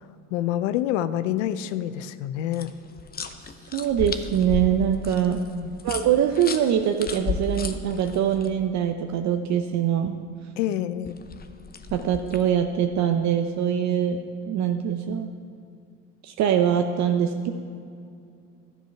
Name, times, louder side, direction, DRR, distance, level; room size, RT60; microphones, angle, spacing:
voice 1, 0.3-2.7 5.2-5.7 10.6-11.2, left 12 dB, 80° left, 14 dB, 0.6 m, -27 dB
sound 1, 2.5-8.5 11.0-12.5, left 5 dB, 25° left, 0.8 m, -34 dB
voice 2, 3.7-5.4 5.8-10.1 11.9-14.2 14.5-15.3 16.3-17.5, right 9 dB, 50° right, 6 dB, 0.7 m, -23 dB
12.0 x 7.5 x 5.8 m, 2.4 s
supercardioid pair, 85°, 37 cm